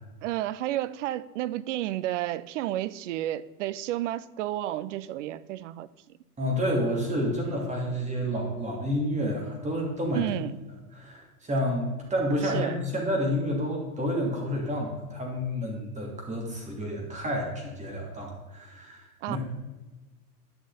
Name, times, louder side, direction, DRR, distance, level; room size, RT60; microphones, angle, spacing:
voice 1, 0.2-5.9 10.1-10.6 12.4-12.8 19.2-19.4, right 14 dB, 55° right, 0.6 m, -31 dB
voice 2, 6.4-10.4 10.9-19.4, equal, 15° right, 2.8 m, -29 dB
11.5 x 6.3 x 4.1 m
hypercardioid pair, 100°, 46 cm